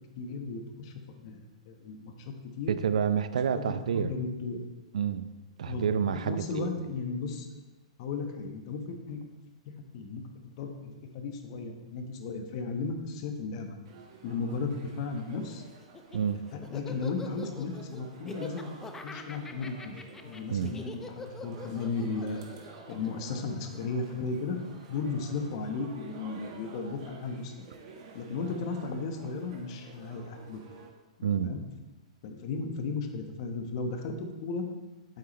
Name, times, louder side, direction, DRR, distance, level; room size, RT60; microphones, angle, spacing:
voice 1, 0.2-2.7 3.5-4.6 5.6-5.8 6.3-7.5 8.0-9.2 9.9-13.8 14.2-15.6 16.5-18.7 19.0-20.0 20.2-22.4 22.9-24.6 24.9-27.7 28.1-30.6 31.3-31.6 32.2-34.6, left 4 dB, 50° left, 5 dB, 1.2 m, -35 dB
voice 2, 2.7-4.1 4.9-5.3 5.6-6.7 16.1-16.4 20.5-20.7 31.2-31.5, right 7 dB, 80° right, 12 dB, 0.5 m, -28 dB
sound 1, 13.8-30.9, right 4 dB, 55° right, 1.6 m, -51 dB
Laughter, 15.8-24.2, left 3 dB, 10° left, 0.6 m, -45 dB
8.5 x 8.2 x 3.2 m, 1.2 s
hypercardioid pair, 130°, 4 cm